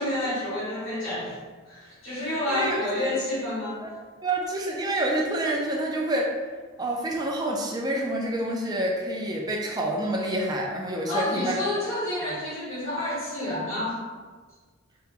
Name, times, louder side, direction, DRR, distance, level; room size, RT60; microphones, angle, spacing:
voice 1, 0.0-1.4 1.7-3.8 11.1-14.0, left 1 dB, 65° left, -9 dB, 1.4 m, -29 dB
voice 2, 2.3-3.1 4.2-6.3 6.8-11.6 12.2-12.3, right 1 dB, 20° right, -1 dB, 0.4 m, -28 dB
2.8 x 2.2 x 3.7 m, 1.4 s
head